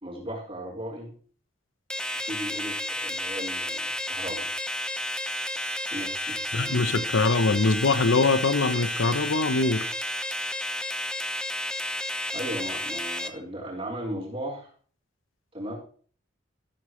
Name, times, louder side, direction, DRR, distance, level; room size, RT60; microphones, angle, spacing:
voice 1, 0.0-1.1 2.2-4.5 5.9-6.9 12.3-14.7 15.5-15.7, equal, 30° right, 4.9 m, -36 dB
sound 1, 1.9-13.3, left 1 dB, 5° left, 0.7 m, -31 dB
voice 2, 6.5-9.8, left 3 dB, 90° left, 0.8 m, -23 dB
15.0 x 8.7 x 3.2 m
head